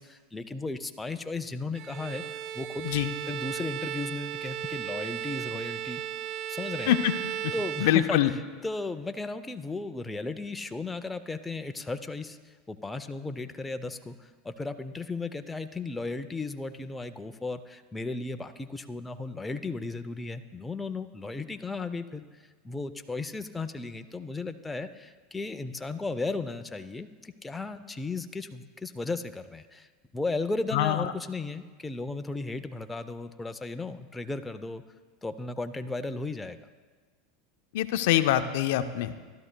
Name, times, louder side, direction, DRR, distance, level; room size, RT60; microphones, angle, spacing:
voice 1, 0.0-2.9 3.3-6.0 6.5-7.0 7.5-8.3 8.6-12.4 12.7-22.2 22.6-29.9 30.1-34.8 35.2-36.7, left 3 dB, 10° left, 8 dB, 0.5 m, -35 dB
Bowed string instrument, 1.7-8.5, right 11 dB, 50° right, 0.3 m, -36 dB
voice 2, 7.8-8.3 30.7-31.1 37.7-39.1, left 12 dB, 70° left, 10 dB, 0.5 m, -24 dB
16.0 x 12.0 x 2.2 m, 1.4 s
hypercardioid pair, 105°, 0 cm